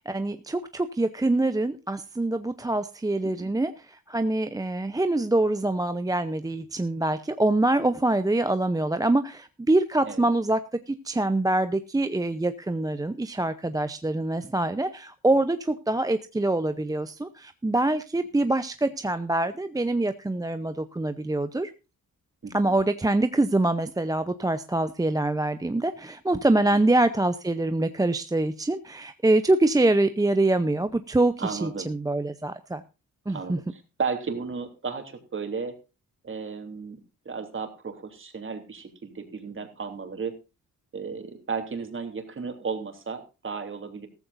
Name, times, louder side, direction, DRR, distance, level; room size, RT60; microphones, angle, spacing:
voice 1, 0.0-21.7 22.5-32.8 33.3-33.6, right 2 dB, 10° right, 10 dB, 0.7 m, -25 dB
voice 2, 22.4-22.8 26.7-26.8 31.4-31.9 33.3-35.8 36.2-37.0 37.2-40.3 40.9-44.1, right 5 dB, 35° right, 6 dB, 3.2 m, -34 dB
15.0 x 14.5 x 2.6 m, 0.29 s
cardioid pair, 100°, 34 cm